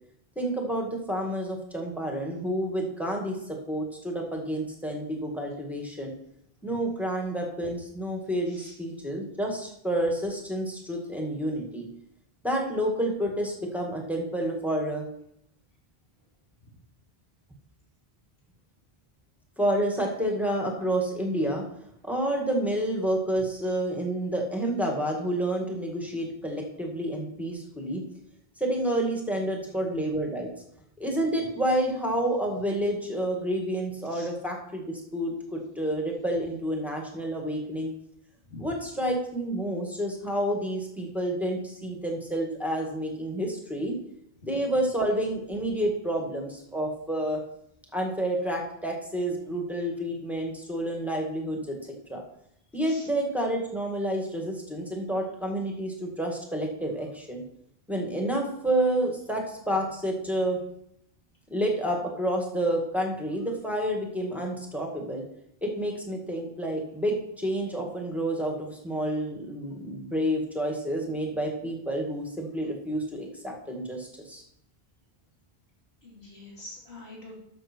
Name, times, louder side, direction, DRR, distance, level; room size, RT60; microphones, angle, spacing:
voice 1, 0.4-6.1 6.6-11.9 12.4-15.0 19.6-21.7 22.0-28.0 28.6-30.5 31.0-37.9 38.6-43.9 44.4-47.4 47.9-51.8 52.1-52.2 52.7-57.4 57.9-60.6 61.5-65.2 65.6-74.4, right 1 dB, ahead, 0 dB, 2.0 m, -29 dB
voice 2, 76.0-77.4, left 2 dB, 75° left, -4 dB, 3.2 m, -45 dB
12.5 x 6.7 x 4.5 m, 0.75 s
omnidirectional pair, 1.1 m